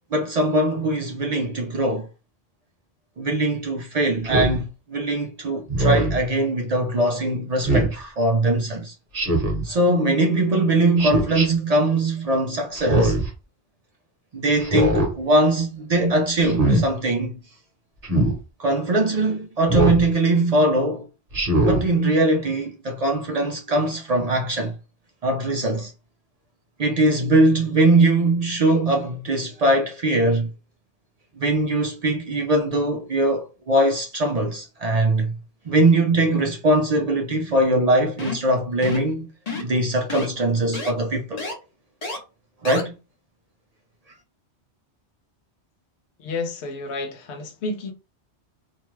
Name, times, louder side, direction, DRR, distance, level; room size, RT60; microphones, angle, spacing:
voice 1, 0.1-2.1 3.2-8.9 9.6-13.2 14.3-17.3 18.6-21.1 21.5-24.7 25.2-25.9 26.8-30.5 31.4-35.3 35.7-39.3 39.6-41.4 42.6-42.9, right 1 dB, 60° right, 0.4 m, -21 dB
Speech synthesizer, 4.2-4.6 5.7-6.2 7.6-7.9 9.1-9.6 11.0-11.5 12.8-13.3 14.6-15.1 16.4-16.8 18.0-18.3 19.7-20.0 21.3-21.8, right 1 dB, 35° right, 0.9 m, -21 dB
sound 1, 38.2-38.5 38.8-39.1 39.5-39.8 40.1-40.3 40.7-40.9 41.4-41.5 42.0-42.2 42.6-42.8, left 3 dB, 40° left, 0.7 m, -30 dB
voice 2, 46.2-47.9, left 3 dB, 85° left, 0.9 m, -30 dB
2.6 x 2.2 x 3.0 m
omnidirectional pair, 1.1 m